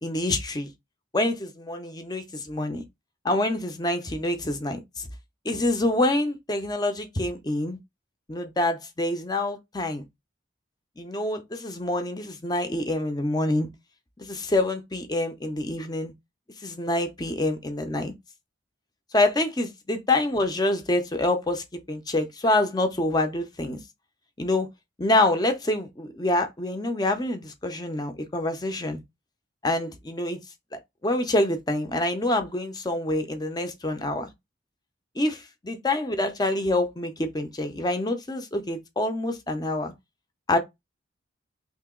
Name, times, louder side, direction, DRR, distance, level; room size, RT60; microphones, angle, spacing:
voice 1, 0.0-0.7 1.1-2.8 3.2-5.1 5.4-7.8 8.3-10.0 11.0-13.7 14.2-16.1 16.6-18.1 19.1-23.8 24.4-24.7 25.0-29.0 29.6-30.4 30.7-34.3 35.2-39.9 40.5-40.6, left 1 dB, 20° left, 0.6 m, -26 dB
2.8 x 2.7 x 3.7 m
head